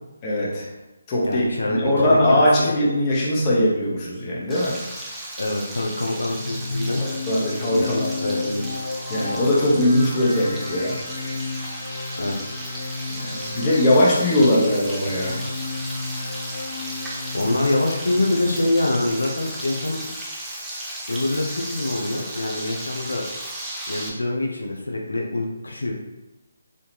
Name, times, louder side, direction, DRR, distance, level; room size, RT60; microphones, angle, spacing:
voice 1, 0.2-0.6 1.1-4.8 7.0-8.1 9.1-11.0 13.2-15.4, left 1 dB, 25° left, -6 dB, 1.1 m, -20 dB
voice 2, 1.2-2.7 5.4-7.0 7.7-8.6 12.2-12.5 17.3-20.0 21.1-23.2 23.9-25.9, left 2 dB, 80° left, 0 dB, 0.7 m, -25 dB
Frying (food), 4.5-24.1, right 1 dB, 10° right, 0.6 m, -35 dB
sound 1, 6.2-18.7, left 3 dB, 45° left, 0.7 m, -32 dB
4.2 x 2.7 x 3.2 m, 1.1 s
figure-of-eight pair, 150°, 0 cm